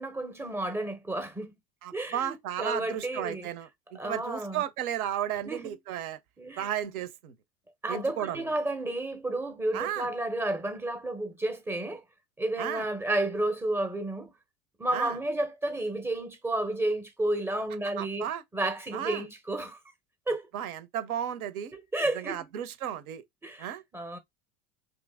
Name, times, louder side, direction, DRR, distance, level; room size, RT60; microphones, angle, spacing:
voice 1, 0.0-1.5 1.9-3.5 3.9-4.6 5.5-5.8 6.4-6.7 7.8-12.0 12.4-14.3 14.8-19.8 20.3-20.4 21.7-22.4 23.4-24.2, right 1 dB, 5° right, 0.5 m, -31 dB
voice 2, 1.8-6.2 6.6-7.3 7.9-8.5 9.7-10.1 12.6-12.9 14.9-15.2 18.0-18.4 18.9-19.2 20.5-21.7 22.1-23.2 23.6-23.8, right 10 dB, 75° right, 0.6 m, -34 dB
2.9 x 2.5 x 3.3 m
hypercardioid pair, 90°, 43 cm